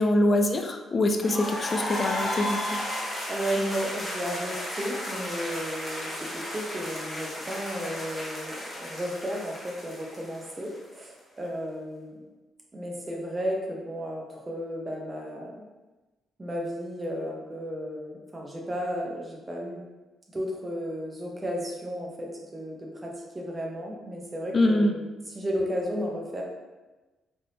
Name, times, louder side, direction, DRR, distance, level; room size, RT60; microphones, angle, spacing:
voice 1, 0.0-2.8 24.5-24.9, left 1 dB, 35° left, 5 dB, 0.3 m, -24 dB
sound 1, 1.2-11.0, left 1 dB, 15° left, 0.9 m, -34 dB
voice 2, 3.3-12.1 12.7-15.6 16.4-19.8 20.3-25.0 25.3-26.4, equal, 25° right, -1 dB, 0.7 m, -33 dB
3.3 x 2.5 x 2.7 m, 1.2 s
cardioid pair, 90°, 0 cm